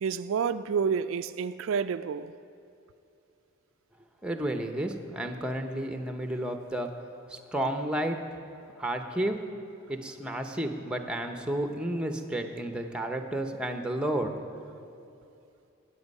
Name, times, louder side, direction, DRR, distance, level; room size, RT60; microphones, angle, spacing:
voice 1, 0.0-2.3, right 6 dB, 65° right, 0.3 m, -29 dB
voice 2, 4.2-6.9 7.3-8.2 8.8-9.4 9.9-14.3, right 1 dB, 5° right, 0.8 m, -31 dB
19.5 x 9.0 x 5.4 m
head